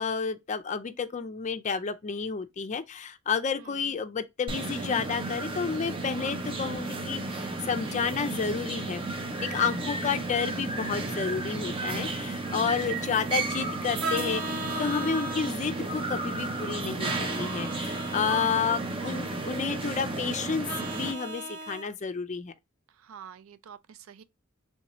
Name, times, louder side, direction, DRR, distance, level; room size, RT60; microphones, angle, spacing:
voice 1, 0.0-9.0 9.4-22.5, left 6 dB, 35° left, 0.4 m, -31 dB
voice 2, 3.6-3.9 12.8-13.1 19.1-20.1 22.9-24.2, right 8 dB, 80° right, 0.4 m, -49 dB
sound 1, 4.5-21.1, right 2 dB, 25° right, 0.6 m, -33 dB
sound 2, 6.8-16.5, equal, 20° left, 1.0 m, -49 dB
Vehicle horn car horn honking, 14.0-15.5 17.0-18.5 20.7-21.9, right 2 dB, 55° right, 1.1 m, -36 dB
3.4 x 2.7 x 3.0 m
head